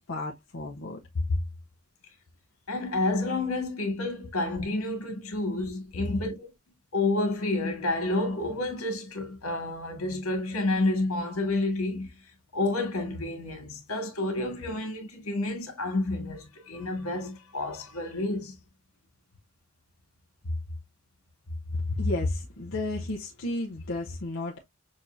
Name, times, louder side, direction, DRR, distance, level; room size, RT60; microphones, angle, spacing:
voice 1, 0.1-1.4 21.7-24.6, left 2 dB, 60° left, 0.7 m, -31 dB
voice 2, 2.7-6.5 6.9-12.1 12.5-18.6, left 2 dB, 85° left, 1.9 m, -29 dB
6.5 x 2.6 x 2.5 m
head